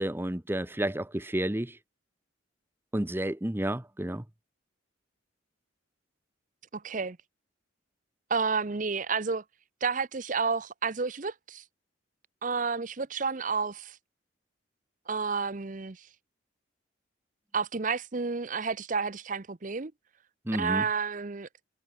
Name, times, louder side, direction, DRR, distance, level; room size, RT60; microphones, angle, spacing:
voice 1, 0.0-1.8 2.9-4.2 20.5-20.9, right 1 dB, 10° right, 0.8 m, -31 dB
voice 2, 6.7-7.2 8.3-9.4 9.8-11.6 12.4-14.0 15.1-16.1 17.5-19.9 20.6-21.5, right 5 dB, 40° right, 0.7 m, -30 dB
head